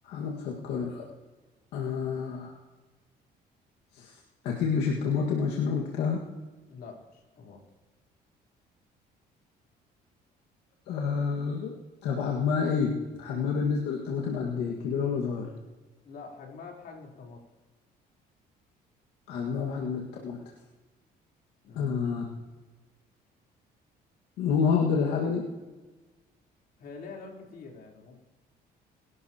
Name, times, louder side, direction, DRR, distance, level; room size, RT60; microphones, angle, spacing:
voice 1, 0.0-1.0 1.7-2.5 3.9-4.2 4.4-6.2 10.9-11.7 12.0-15.5 19.3-20.4 21.7-22.2 24.4-25.5, left 6 dB, 85° left, -2 dB, 1.9 m, -28 dB
voice 2, 6.7-7.6 16.0-17.4 21.6-21.9 26.8-28.2, left 4 dB, 65° left, 0 dB, 3.8 m, -45 dB
22.0 x 12.0 x 3.0 m, 1.2 s
cardioid pair, 110°, 17 cm